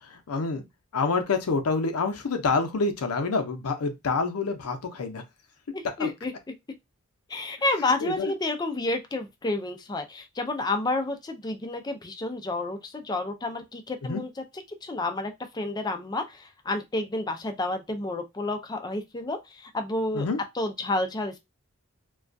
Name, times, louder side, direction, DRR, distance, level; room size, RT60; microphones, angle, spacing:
voice 1, 0.0-0.6 0.9-5.2 6.0-6.1 8.0-8.3 14.0-14.2 20.1-20.4, left 4 dB, 85° left, 0.5 m, -27 dB
voice 2, 5.7-6.3 7.3-14.3 14.8-20.3 20.6-21.4, left 2 dB, 20° left, 0.3 m, -30 dB
2.3 x 2.1 x 2.5 m
head